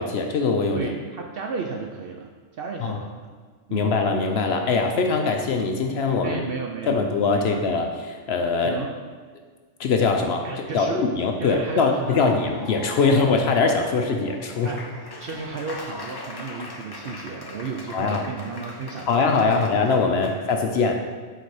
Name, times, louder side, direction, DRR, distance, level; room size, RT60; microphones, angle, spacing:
voice 1, 0.0-0.9 2.8-3.0 3.7-6.4 6.9-8.8 9.8-10.5 10.7-14.8 17.9-18.2 19.1-21.0, left 4 dB, 65° left, 4 dB, 0.7 m, -22 dB
voice 2, 0.7-2.3 2.6-3.3 3.7-3.9 5.0-5.2 6.2-7.1 7.4-7.8 8.6-8.9 10.4-11.0 11.4-12.3 14.6-14.8 15.2-19.6 20.3-20.4, right 4 dB, 65° right, 2 dB, 0.6 m, -33 dB
Laughter / Applause, 11.9-20.4, left 2 dB, 35° left, 0.3 m, -39 dB
6.7 x 3.9 x 4.7 m, 1.5 s
omnidirectional pair, 1.4 m